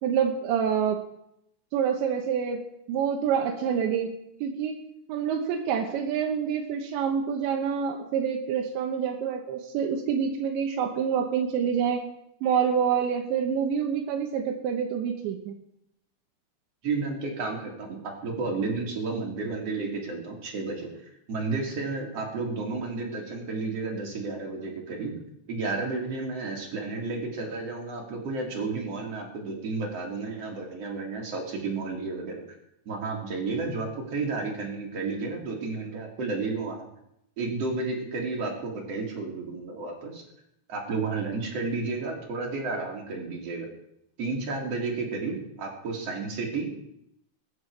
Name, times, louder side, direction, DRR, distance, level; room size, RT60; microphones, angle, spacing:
voice 1, 0.0-1.0 1.7-2.6 2.9-4.1 4.4-4.7 5.1-12.0 12.4-15.5, right 7 dB, 85° right, 1 dB, 3.5 m, -27 dB
voice 2, 16.8-20.9 21.3-25.1 25.5-32.4 32.8-36.9 37.4-40.2 40.7-43.7 44.2-46.8, right 3 dB, 40° right, 0 dB, 3.3 m, -32 dB
21.5 x 10.0 x 4.7 m, 0.81 s
omnidirectional pair, 5.1 m